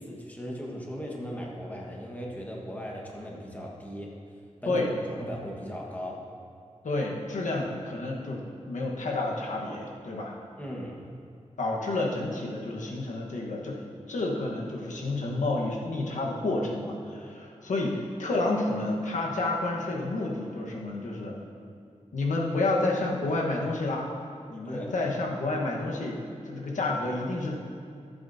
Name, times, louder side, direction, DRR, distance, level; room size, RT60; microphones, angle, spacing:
voice 1, 0.0-4.1 4.6-4.8 5.1-6.2 10.6-11.0 24.6-24.9, equal, 10° left, -2 dB, 1.4 m, -37 dB
voice 2, 6.8-10.4 11.6-13.8 14.1-21.4 22.1-24.1 24.5-27.5, left 2 dB, 90° left, -1 dB, 1.3 m, -30 dB
14.0 x 7.7 x 2.7 m, 2.5 s
wide cardioid pair, 85°, 12 cm